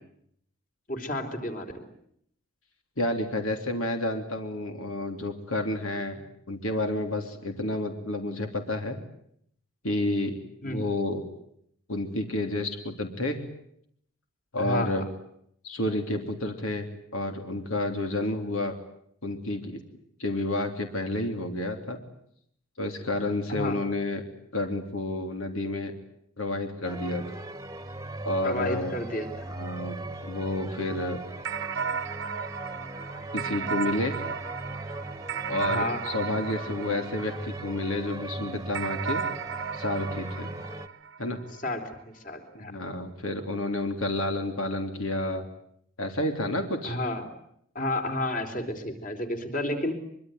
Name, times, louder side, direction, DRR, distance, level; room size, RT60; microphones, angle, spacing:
voice 1, 0.9-1.9 10.6-10.8 14.6-15.0 23.5-23.8 28.4-29.4 35.6-36.0 41.6-42.7 46.8-47.3 47.7-49.9, left 1 dB, 40° left, 6 dB, 4.0 m, -31 dB
voice 2, 3.0-9.0 9.8-10.4 10.6-11.2 11.9-13.4 14.5-15.0 15.6-16.9 17.1-18.8 19.2-19.8 20.2-22.0 22.8-24.2 24.5-25.9 26.4-27.2 28.2-28.9 29.5-30.0 30.2-31.2 33.3-34.2 35.5-39.2 39.7-40.5 41.2-41.4 42.5-45.5 46.0-47.0, left 1 dB, 80° left, 5 dB, 3.3 m, -30 dB
sound 1, 26.8-40.9, right 2 dB, 15° right, 1.4 m, -38 dB
sound 2, 31.5-38.0 38.7-41.5, right 6 dB, 60° right, 1.0 m, -34 dB
24.0 x 23.5 x 9.3 m, 0.71 s
head